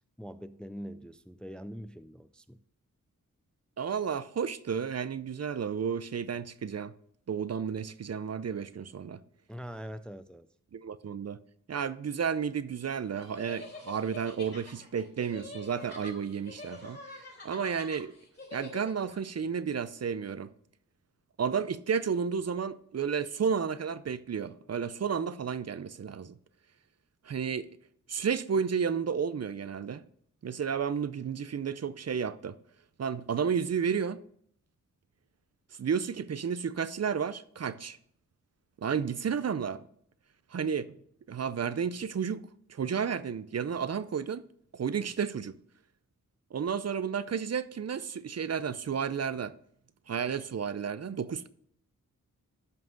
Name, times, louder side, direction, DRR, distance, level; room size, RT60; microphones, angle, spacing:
voice 1, 0.2-2.6 9.5-10.5, equal, 5° left, 0.4 m, -43 dB
voice 2, 3.8-6.9 7.3-9.2 10.7-11.4 11.7-17.0 17.4-18.1 18.5-20.5 21.4-26.3 27.3-27.7 28.1-30.0 30.4-32.6 33.0-34.2 35.8-38.0 38.8-39.8 40.5-40.9 41.3-44.5 44.7-45.6 46.5-49.5 50.1-51.5, right 7 dB, 50° right, 0.6 m, -32 dB
sound 1, 13.2-19.2, left 2 dB, 30° left, 4.0 m, -46 dB
12.5 x 5.7 x 3.9 m
wide cardioid pair, 80°, 34 cm